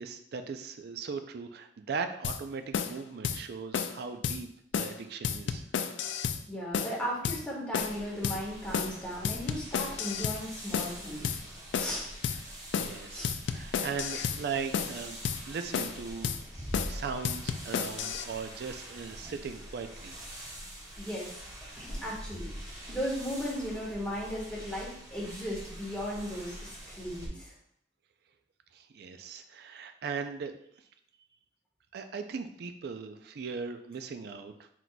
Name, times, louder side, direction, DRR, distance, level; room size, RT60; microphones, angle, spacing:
voice 1, 0.0-4.5 4.8-5.6 12.8-15.2 15.5-16.3 16.9-20.2 28.7-30.5 31.9-34.5, right 5 dB, 60° right, 8 dB, 0.4 m, -38 dB
sound 1, 2.2-2.4 2.7-3.0 3.2-3.4 3.7-4.0 4.2-4.4 4.7-5.0 5.2-6.4 6.7-7.0 7.2-7.4 7.7-8.0 8.2-8.4 8.7-9.0 9.2-10.4 10.7-11.0 11.2-11.4 11.7-12.0 12.2-12.4 12.7-13.0 13.2-14.4 14.7-15.0 15.2-15.4 15.7-16.0 16.2-16.4 16.7-17.0 17.2-18.2, left 7 dB, 85° left, 0.3 m, -31 dB
voice 2, 6.5-11.4 11.8-12.0 13.1-13.3 14.1-14.2 21.0-21.3 21.8-27.5, equal, 5° left, -6 dB, 1.3 m, -36 dB
sound 2, 7.8-27.3, equal, 20° right, 0.8 m, -44 dB
4.5 x 4.0 x 2.2 m, 0.69 s
head